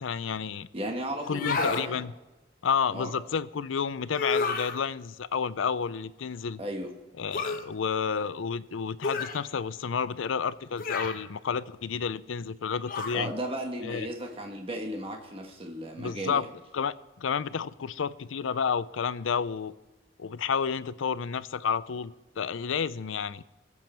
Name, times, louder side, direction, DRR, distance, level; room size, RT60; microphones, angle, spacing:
voice 1, 0.0-0.7 1.3-2.1 2.6-6.6 7.2-13.3 13.8-14.1 16.0-16.4 16.7-19.7 20.2-23.4, left 6 dB, 80° left, 17 dB, 0.5 m, -30 dB
voice 2, 0.7-2.0 2.9-3.1 6.6-6.9 13.1-16.5, right 1 dB, 30° right, 2 dB, 1.4 m, -35 dB
sound 1, 1.2-1.9 4.1-4.8 7.3-7.6 9.0-9.4 10.8-11.2 12.9-13.2, left 4 dB, 45° left, 1.0 m, -30 dB
22.0 x 7.7 x 4.5 m, 1.1 s
head